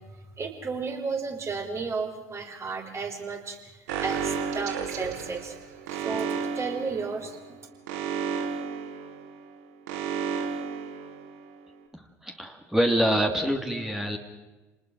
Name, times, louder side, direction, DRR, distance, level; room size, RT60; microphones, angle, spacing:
voice 1, 0.1-3.6 4.0-5.6 5.9-7.6, right 4 dB, 30° right, 4 dB, 5.7 m, -33 dB
Alarm, 3.9-11.6, right 6 dB, 75° right, 2.7 m, -33 dB
voice 2, 11.9-14.2, equal, 5° right, 3 dB, 3.0 m, -26 dB
29.0 x 20.0 x 6.4 m, 1.1 s
hypercardioid pair, 65°, 9 cm